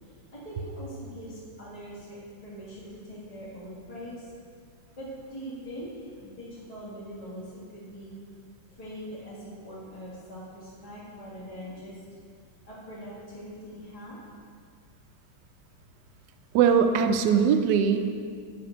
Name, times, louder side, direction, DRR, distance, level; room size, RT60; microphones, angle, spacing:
voice 1, 0.3-4.3 5.0-8.2 8.8-12.0 12.6-14.2, equal, 20° left, -7 dB, 1.3 m, -42 dB
voice 2, 16.5-18.1, right 7 dB, 75° right, 7 dB, 1.0 m, -21 dB
7.0 x 6.0 x 5.0 m, 2.1 s
omnidirectional pair, 2.2 m